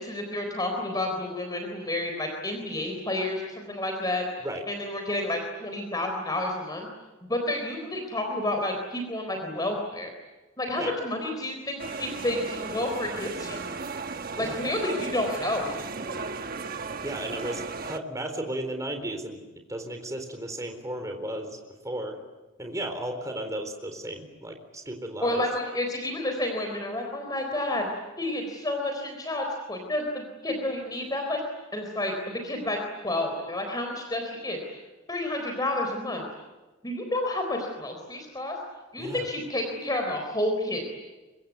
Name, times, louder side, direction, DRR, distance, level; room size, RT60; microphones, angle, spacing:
voice 1, 0.0-4.3 4.7-6.9 7.3-10.1 10.6-13.7 14.4-15.8 25.2-27.9 28.2-31.4 31.7-32.8 33.0-34.6 35.1-36.2 36.8-38.6 38.9-40.8, left 1 dB, 20° left, 3 dB, 3.9 m, -30 dB
sound 1, 11.8-18.0, right 4 dB, 50° right, 1.2 m, -35 dB
voice 2, 17.0-19.4 19.7-21.6 21.8-22.2 22.6-24.6 24.9-25.4 39.0-39.2, right 1 dB, 15° right, 5 dB, 4.0 m, -34 dB
25.5 x 23.5 x 9.5 m, 1.2 s
head